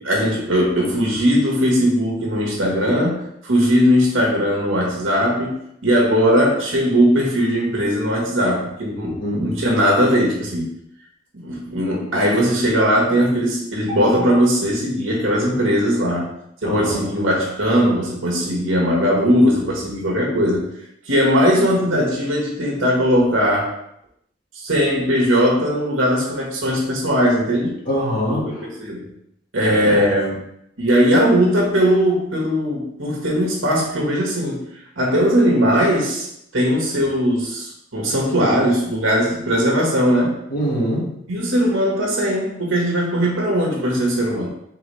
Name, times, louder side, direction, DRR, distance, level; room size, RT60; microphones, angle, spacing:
voice 1, 0.0-10.7 11.4-20.7 21.1-23.7 24.5-27.7 28.3-29.0 29.5-30.4 30.8-34.6 35.0-36.3 36.5-40.4 41.3-44.5, equal, 90° right, -2 dB, 1.3 m, -19 dB
voice 2, 16.6-17.1 27.9-28.6 29.8-30.0 40.5-41.1, equal, 50° left, -5 dB, 1.6 m, -23 dB
4.2 x 4.0 x 3.1 m, 0.76 s
head